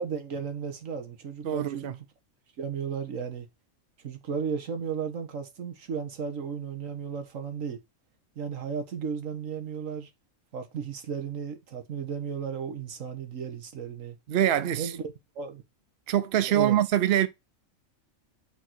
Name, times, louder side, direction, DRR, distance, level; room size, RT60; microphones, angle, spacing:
voice 1, 0.0-1.9 2.6-3.5 4.0-7.8 8.3-10.1 10.5-14.2 14.7-15.0 15.3-15.6 16.5-16.7, right 6 dB, 70° right, 1.7 m, -34 dB
voice 2, 1.4-1.9 14.3-14.9 16.1-17.3, right 11 dB, 55° right, 0.8 m, -24 dB
6.4 x 4.0 x 4.5 m
omnidirectional pair, 1.4 m